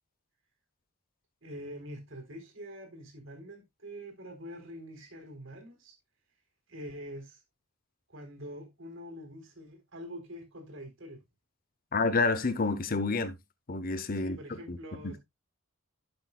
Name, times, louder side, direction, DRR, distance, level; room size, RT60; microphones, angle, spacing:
voice 1, 1.4-5.9 6.7-7.4 8.1-11.2 14.1-15.2, equal, 60° right, 3.9 m, -45 dB
voice 2, 11.9-13.3 13.7-14.4 14.7-14.8 15.0-15.2, left 3 dB, 40° left, 0.8 m, -28 dB
11.5 x 7.8 x 2.3 m
head